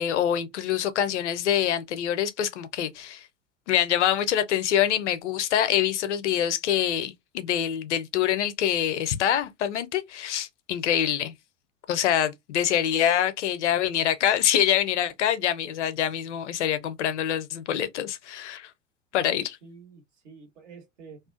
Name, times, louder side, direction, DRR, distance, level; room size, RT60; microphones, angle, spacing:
voice 1, 0.0-3.2 3.7-11.3 11.9-18.7 19.1-19.6, left 10 dB, 70° left, 0.6 m, -25 dB
voice 2, 19.1-21.2, right 4 dB, 70° right, 1.3 m, -48 dB
2.4 x 2.3 x 2.5 m
figure-of-eight pair, 75°, 37 cm